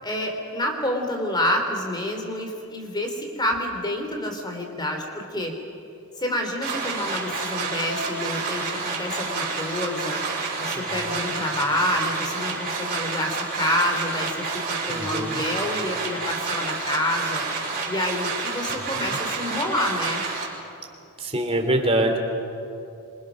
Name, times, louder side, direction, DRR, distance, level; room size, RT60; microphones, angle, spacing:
voice 1, 0.0-5.5 6.2-10.2 10.6-17.4 17.9-20.2, left 1 dB, 20° left, 3 dB, 3.2 m, -28 dB
sound 1, 6.6-20.5, right 4 dB, 45° right, 6.2 m, -29 dB
voice 2, 10.7-11.1 14.9-15.4 18.7-19.2 21.2-22.2, right 1 dB, 25° right, 3 dB, 3.1 m, -25 dB
27.0 x 26.5 x 6.3 m, 2.7 s
head